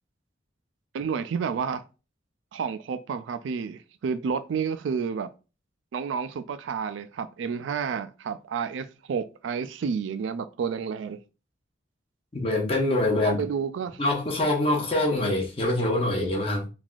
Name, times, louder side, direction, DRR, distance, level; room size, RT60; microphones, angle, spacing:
voice 1, 0.9-1.8 2.5-5.3 5.9-11.2 13.2-14.0, right 6 dB, 85° right, 0.3 m, -30 dB
voice 2, 12.3-13.4 14.0-16.7, left 1 dB, 30° left, 0.7 m, -24 dB
3.3 x 2.5 x 2.4 m
head